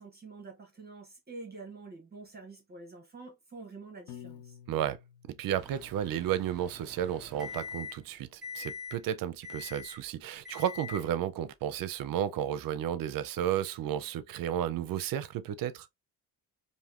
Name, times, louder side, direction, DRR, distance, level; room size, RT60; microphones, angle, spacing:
voice 1, 0.0-4.6, right 3 dB, 25° right, 0.8 m, -47 dB
Piano, 4.1-6.3, left 10 dB, 70° left, 0.6 m, -51 dB
voice 2, 5.3-15.9, right 10 dB, 60° right, 0.5 m, -33 dB
Microwave oven, 5.5-8.1 8.4-9.0 9.4-10.0 10.4-11.1, left 5 dB, ahead, 1.1 m, -44 dB
3.4 x 2.6 x 2.4 m
cardioid pair, 115°, 40 cm